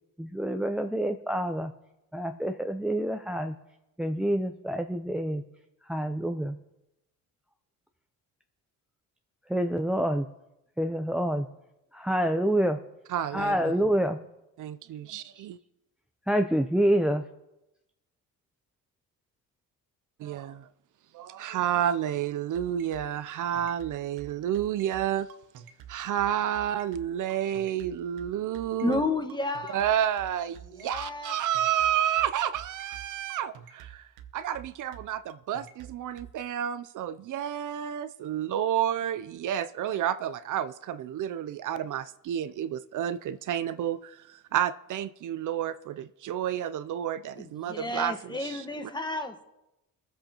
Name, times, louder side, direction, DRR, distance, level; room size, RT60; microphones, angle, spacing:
voice 1, 0.2-1.7 2.1-3.5 4.0-5.4 5.9-6.6 9.5-10.3 10.8-11.5 11.9-12.8 13.3-14.2 15.4-15.5 16.3-17.2, right 1 dB, 5° right, 0.6 m, -27 dB
voice 2, 13.1-13.7 14.6-15.6 20.2-20.7 21.1-25.3 25.9-29.0 29.7-48.7, right 10 dB, 60° right, 0.5 m, -30 dB
sound 1, 22.5-36.3, right 10 dB, 90° right, 1.0 m, -47 dB
voice 3, 28.8-29.8 30.7-31.4 47.4-49.4, left 2 dB, 10° left, 1.3 m, -31 dB
21.0 x 8.1 x 2.9 m
cardioid pair, 90°, 35 cm